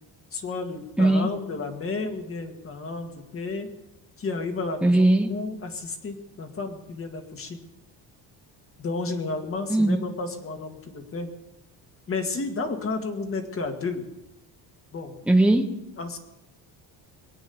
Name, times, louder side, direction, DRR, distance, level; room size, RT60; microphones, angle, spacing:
voice 1, 0.3-3.7 4.2-7.6 8.8-11.3 12.1-14.0 14.9-15.1 16.0-16.2, left 3 dB, 30° left, 5 dB, 1.9 m, -32 dB
voice 2, 1.0-1.3 4.8-5.3 9.7-10.0 15.3-15.7, right 1 dB, 5° right, 4 dB, 1.0 m, -19 dB
22.5 x 8.8 x 7.0 m, 0.93 s
cardioid pair, 170°, 42 cm